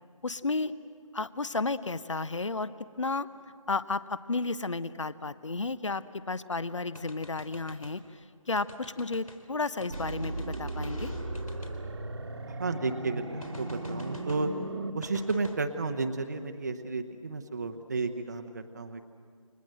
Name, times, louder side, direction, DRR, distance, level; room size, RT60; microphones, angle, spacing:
voice 1, 0.2-0.7 1.1-2.7 3.0-3.3 3.7-11.1, left 3 dB, 60° left, 15 dB, 0.9 m, -32 dB
sound 1, 6.9-8.0 8.6-9.4 9.8-12.7 13.4-14.5 15.0-15.6, left 1 dB, 80° left, 3.9 m, -45 dB
sound 2, 9.9-14.9, right 2 dB, 50° right, 1.5 m, -37 dB
voice 2, 12.5-14.5 14.9-19.1, right 3 dB, 30° right, 6 dB, 1.0 m, -32 dB
29.5 x 26.0 x 7.7 m, 2.1 s
figure-of-eight pair, 160°, 18 cm